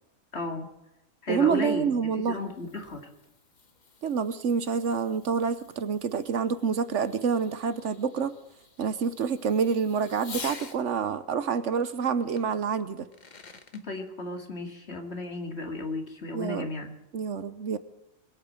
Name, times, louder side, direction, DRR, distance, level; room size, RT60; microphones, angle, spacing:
voice 1, 0.3-0.7 1.2-3.1 13.8-16.9, left 2 dB, 55° left, 4 dB, 2.4 m, -34 dB
voice 2, 1.3-2.4 4.0-8.3 8.8-13.1 16.3-16.7 17.1-17.8, right 6 dB, 65° right, 13 dB, 1.2 m, -27 dB
Fireworks, 2.1-10.8 12.4-12.5 13.0-13.8, left 4 dB, 35° left, 1.2 m, -48 dB
21.5 x 8.5 x 7.8 m, 0.90 s
omnidirectional pair, 1.4 m